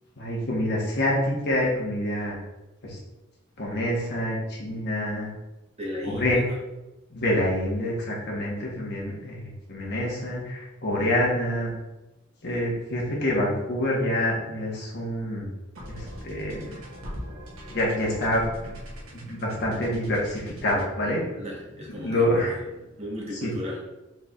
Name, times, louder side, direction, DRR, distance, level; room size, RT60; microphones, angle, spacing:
voice 1, 0.2-2.4 2.8-3.0 3.6-5.3 6.1-6.4 7.1-11.7 12.4-15.5 15.9-16.8 17.7-18.7 19.1-21.2 21.9-22.6 23.4-23.5, left 1 dB, 55° left, -2 dB, 1.2 m, -27 dB
voice 2, 5.8-6.6 21.3-22.6 23.0-23.8, left 1 dB, 30° right, -5 dB, 1.3 m, -35 dB
sound 1, 15.8-23.1, equal, 75° right, 1.1 m, -42 dB
4.7 x 4.1 x 2.5 m, 1.0 s
head